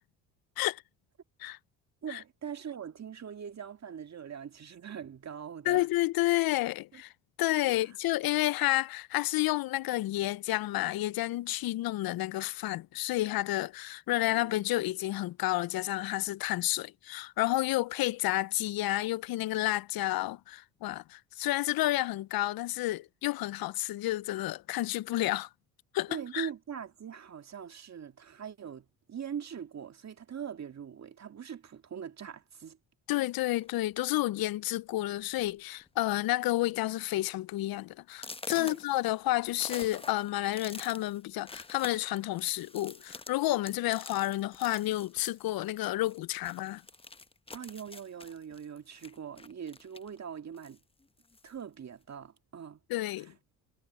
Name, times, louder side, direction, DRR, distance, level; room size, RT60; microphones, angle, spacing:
voice 1, 2.0-5.9 6.9-7.0 7.7-7.8 14.3-14.6 26.1-32.8 38.6-38.8 47.5-50.8 51.4-52.8 53.2-53.3, right 8 dB, 45° right, 2.1 m, -42 dB
voice 2, 5.7-7.1 7.4-25.5 25.9-26.5 33.1-46.8 52.9-53.3, left 16 dB, 65° left, 0.8 m, -30 dB
sound 1, 33.6-33.9 34.7-34.8 35.2-35.5 35.8-36.3 36.7-36.8 37.3-37.4 38.1-46.2 46.4-50.2 50.5-51.6, left 3 dB, 15° left, 1.0 m, -47 dB
hypercardioid pair, 60°, 39 cm